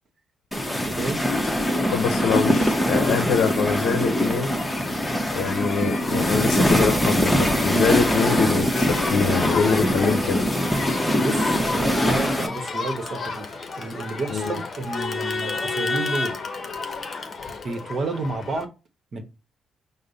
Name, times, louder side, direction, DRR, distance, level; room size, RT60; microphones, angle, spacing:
sound 1, 0.5-12.5, equal, 5° left, 0.9 m, -22 dB
voice 1, 0.7-1.2 11.2-16.4 17.5-18.7 19.1-19.2, right 3 dB, 50° right, 1.0 m, -31 dB
Crowd, 1.5-18.6, left 4 dB, 40° left, 0.8 m, -33 dB
voice 2, 1.9-4.5 5.3-10.5 14.3-14.6, left 6 dB, 80° left, 0.6 m, -24 dB
5.3 x 2.1 x 3.9 m
cardioid pair, 90°, 0 cm